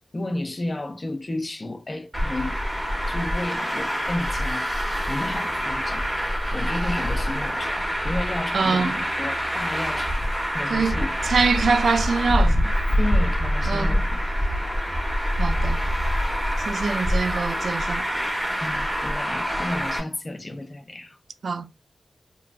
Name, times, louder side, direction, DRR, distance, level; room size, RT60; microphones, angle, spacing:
voice 1, 0.1-2.6 3.1-6.1 6.5-11.1 13.0-14.2 18.6-21.2, left 1 dB, 25° left, 0.4 m, -32 dB
Traffic noise roadway noise, 2.1-20.0, equal, ahead, 0.8 m, -25 dB
voice 2, 8.5-9.0 10.7-11.0 11.2-12.7 13.7-14.0 15.4-15.8 16.7-18.0 21.4-21.7, right 5 dB, 70° right, 0.3 m, -24 dB
3.0 x 2.4 x 2.2 m
wide cardioid pair, 140°, 0 cm